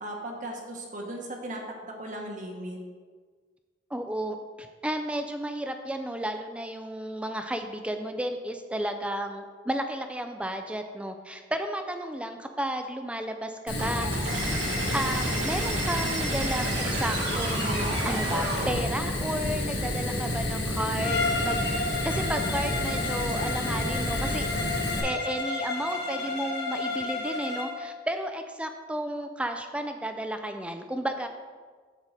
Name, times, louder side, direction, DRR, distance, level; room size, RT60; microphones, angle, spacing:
voice 1, 0.0-2.8, right 1 dB, 40° right, 0 dB, 1.0 m, -37 dB
voice 2, 3.9-14.3 14.9-21.6 22.0-24.4 25.0-31.3, right 1 dB, 5° right, 6 dB, 0.4 m, -33 dB
Fire, 13.7-25.0, left 1 dB, 90° left, 1.5 m, -30 dB
sound 1, 13.8-18.8, right 2 dB, 70° right, 1.9 m, -32 dB
Bowed string instrument, 21.0-27.8, left 3 dB, 60° left, 1.2 m, -32 dB
8.2 x 3.7 x 6.4 m, 1.5 s
head